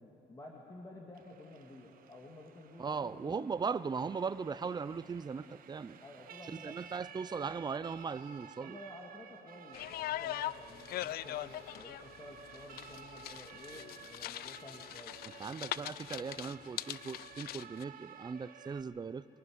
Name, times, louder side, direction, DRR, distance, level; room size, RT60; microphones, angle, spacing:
voice 1, 0.0-3.5 6.0-6.8 8.6-15.2, left 1 dB, 20° left, -1 dB, 2.3 m, -52 dB
Siren, 1.1-18.8, right 9 dB, 60° right, 1.3 m, -54 dB
voice 2, 2.8-6.0 6.5-8.8 15.2-19.3, right 5 dB, 25° right, 16 dB, 0.6 m, -38 dB
sound 1, 9.7-17.8, left 14 dB, 65° left, 0.4 m, -42 dB
24.0 x 18.0 x 9.9 m, 3.0 s
cardioid pair, 110°, 17 cm